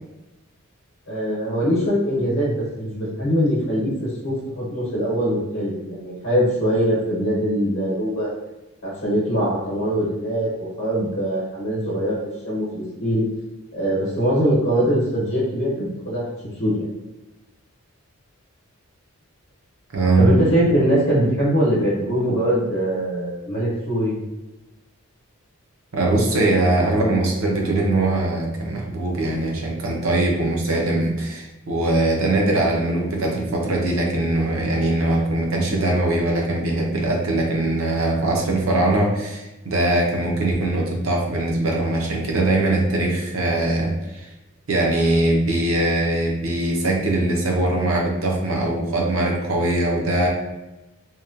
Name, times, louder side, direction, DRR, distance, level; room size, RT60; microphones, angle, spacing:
voice 1, 1.1-8.3 8.8-10.5 10.8-12.2 12.4-13.3 13.7-16.3 16.6-16.9 20.2-24.2, equal, 65° left, -8 dB, 0.8 m, -22 dB
voice 2, 19.9-20.3 25.9-44.3 44.7-50.3, right 2 dB, 70° right, -1 dB, 0.6 m, -21 dB
2.9 x 2.2 x 2.4 m, 1.0 s
head